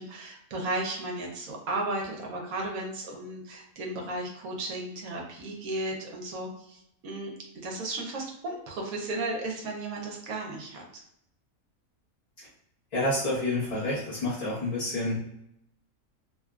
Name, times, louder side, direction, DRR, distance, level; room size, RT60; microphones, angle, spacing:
voice 1, 0.0-7.3 7.6-11.0, right 2 dB, 75° right, 0 dB, 1.1 m, -34 dB
voice 2, 12.9-15.3, left 1 dB, 30° left, -11 dB, 0.9 m, -29 dB
2.9 x 2.3 x 2.3 m, 0.77 s
omnidirectional pair, 1.5 m